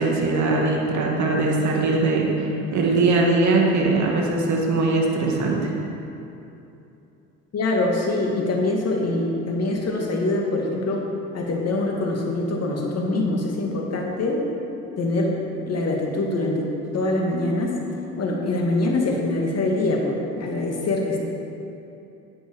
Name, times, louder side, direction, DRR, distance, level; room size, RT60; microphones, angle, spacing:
voice 1, 0.0-5.6, right 3 dB, 40° right, -1 dB, 2.3 m, -21 dB
voice 2, 7.5-11.0 11.3-14.4 15.0-15.3 15.6-16.7 16.9-17.7 18.2-21.2, left 2 dB, 35° left, 0 dB, 2.3 m, -24 dB
10.5 x 8.9 x 4.8 m, 2.8 s
hypercardioid pair, 65°, 42 cm